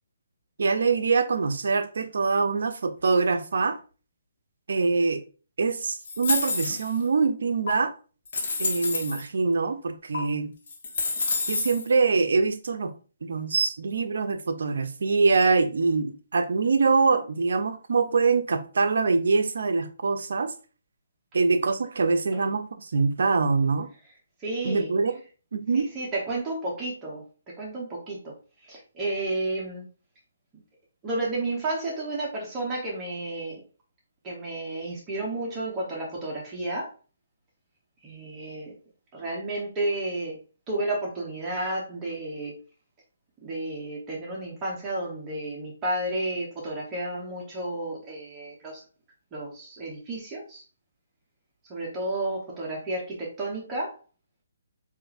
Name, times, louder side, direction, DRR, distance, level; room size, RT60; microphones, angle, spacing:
voice 1, 0.6-3.8 4.7-5.2 5.6-7.9 8.6-10.5 11.5-12.9 13.2-20.5 21.3-23.9 24.6-25.2 25.5-25.9, right 4 dB, 70° right, 0.5 m, -24 dB
sound 1, 6.0-7.0 7.7-7.8 8.3-9.2 10.1-10.2 10.7-11.9, left 3 dB, 55° left, 1.2 m, -28 dB
voice 2, 24.4-25.0 25.7-27.2 27.6-28.3 28.6-29.8 31.0-33.6 34.2-36.9 38.0-38.7 39.1-40.4 40.7-42.6 43.4-48.8 49.3-50.6 51.7-53.9, right 2 dB, 20° right, 0.9 m, -32 dB
4.4 x 2.5 x 2.5 m
hypercardioid pair, 150°, 0 cm